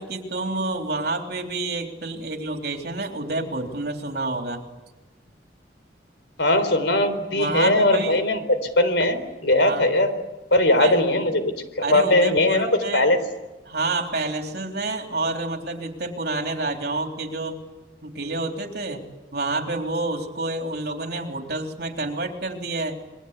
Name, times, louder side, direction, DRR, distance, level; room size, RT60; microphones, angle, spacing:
voice 1, 0.0-4.6 7.3-8.2 9.5-9.9 10.8-11.0 11.8-13.1 13.7-17.6 18.0-19.0 19.3-23.0, right 2 dB, 60° right, 3 dB, 3.7 m, -28 dB
voice 2, 6.4-8.4 8.8-10.1 10.5-13.2, left 1 dB, 80° left, 11 dB, 4.0 m, -20 dB
27.0 x 22.5 x 8.4 m, 1.1 s
head